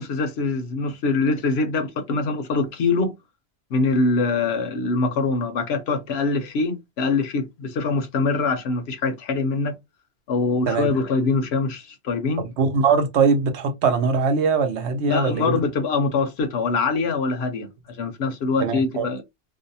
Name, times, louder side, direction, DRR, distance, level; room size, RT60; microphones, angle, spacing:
voice 1, 0.0-3.1 3.7-9.8 10.3-12.4 15.0-19.2, left 3 dB, 70° left, 0.8 m, -23 dB
voice 2, 12.4-15.6 18.6-19.1, right 5 dB, 75° right, 0.9 m, -21 dB
2.6 x 2.0 x 2.6 m
omnidirectional pair, 1.2 m